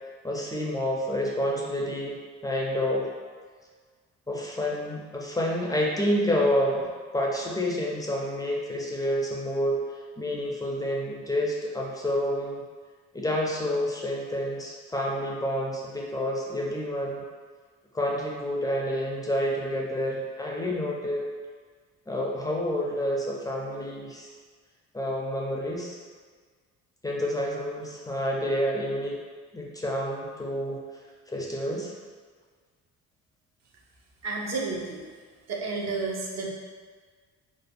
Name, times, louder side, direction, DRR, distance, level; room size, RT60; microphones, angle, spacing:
voice 1, 0.2-2.2 2.4-3.1 4.3-9.8 10.2-12.6 13.1-17.2 17.9-21.2 22.1-24.3 24.9-26.0 27.0-29.2 29.5-30.8 31.3-31.9, equal, 10° left, -3 dB, 0.4 m, -29 dB
voice 2, 34.2-35.0 35.5-36.5, right 3 dB, 60° right, -1 dB, 0.6 m, -31 dB
3.3 x 2.0 x 2.4 m, 1.5 s
cardioid pair, 90°, 30 cm